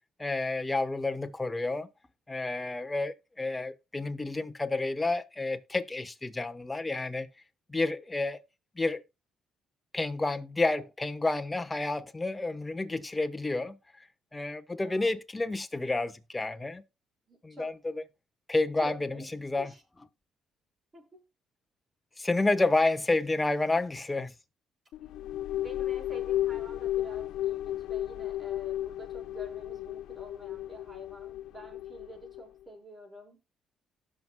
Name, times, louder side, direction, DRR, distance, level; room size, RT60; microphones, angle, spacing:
voice 1, 0.2-1.9 2.3-7.3 7.7-8.4 8.8-9.0 9.9-13.8 14.3-16.8 17.4-17.9 18.5-19.7 22.2-24.3, left 2 dB, 15° left, 1.1 m, -30 dB
voice 2, 14.8-15.1 17.3-17.7 18.8-19.3 19.6-19.8 20.9-21.2 25.5-33.5, equal, 20° right, 5.7 m, -48 dB
sound 1, 24.9-32.5, left 13 dB, 80° left, 0.5 m, -34 dB
18.0 x 6.2 x 2.2 m
cardioid pair, 100°, 0 cm